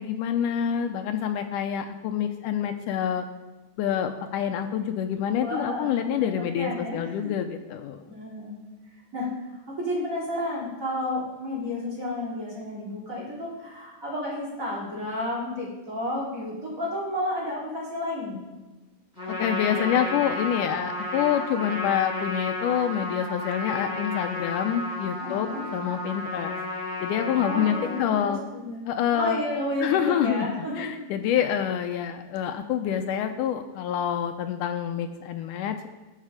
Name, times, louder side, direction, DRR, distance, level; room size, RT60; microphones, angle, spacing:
voice 1, 0.0-3.2 3.8-8.0 19.4-26.6 27.0-28.4 28.9-29.4 29.8-35.9, left 9 dB, 80° left, 7 dB, 2.1 m, -27 dB
voice 2, 5.4-7.3 8.1-8.6 9.1-18.4 25.2-25.6 27.4-28.8 29.1-31.0, left 1 dB, 25° right, -6 dB, 4.1 m, -31 dB
Trumpet, 19.2-28.2, left 2 dB, 5° right, 4.7 m, -32 dB
19.5 x 6.6 x 5.0 m, 1.2 s
omnidirectional pair, 3.8 m